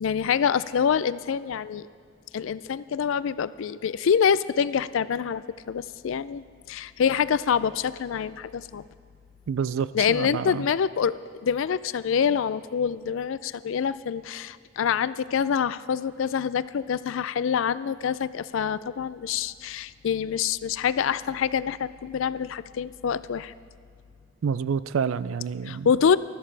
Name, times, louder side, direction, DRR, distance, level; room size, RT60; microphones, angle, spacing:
voice 1, 0.0-1.9 2.3-8.8 9.9-23.5 25.6-26.2, left 7 dB, 65° left, 16 dB, 0.3 m, -26 dB
voice 2, 9.5-10.6 24.4-25.9, right 6 dB, 75° right, 17 dB, 0.4 m, -28 dB
20.0 x 13.5 x 3.3 m, 2.2 s
head